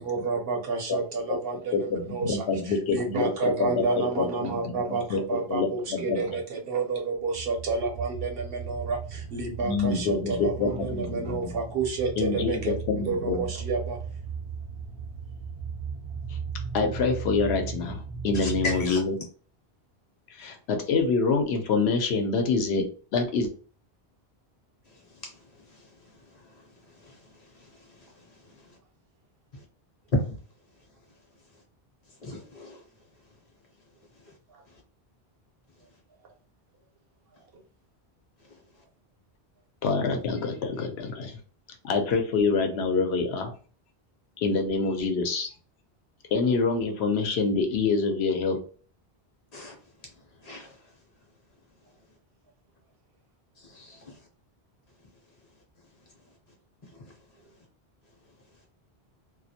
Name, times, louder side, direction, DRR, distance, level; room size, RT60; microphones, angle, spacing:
voice 1, 0.0-14.1 34.5-34.6, right 4 dB, 65° right, 0.8 m, -30 dB
voice 2, 1.7-5.2 5.5-6.2 9.6-11.5 12.2-13.4 16.3-16.4 16.7-19.1 20.4-22.9 23.1-23.5 39.8-41.4 41.8-43.5 44.4-45.5 46.3-48.6, left 4 dB, 75° left, 0.8 m, -26 dB
sound 1, 7.2-18.9, right 6 dB, 40° right, 0.4 m, -37 dB
voice 3, 18.3-19.0 27.0-27.2 27.6-27.7 28.0-28.1 30.1-30.4 32.2-32.8 49.5-49.8 50.4-50.8 53.6-54.2 57.0-57.1, left 2 dB, 45° left, 0.7 m, -33 dB
2.3 x 2.0 x 2.6 m
omnidirectional pair, 1.1 m